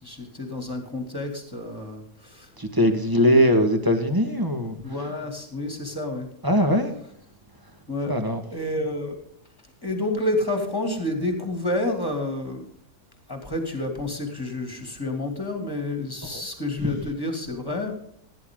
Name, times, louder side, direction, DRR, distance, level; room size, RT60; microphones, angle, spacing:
voice 1, 0.0-2.5 4.8-6.3 7.9-8.2 8.5-9.2 9.8-12.7 13.3-18.0, left 1 dB, 15° left, 4 dB, 2.8 m, -29 dB
voice 2, 2.6-4.8 6.4-6.9 8.1-8.4 16.3-16.4 16.8-16.9, equal, 15° right, 6 dB, 1.6 m, -21 dB
17.0 x 10.5 x 3.8 m, 0.65 s
omnidirectional pair, 1.7 m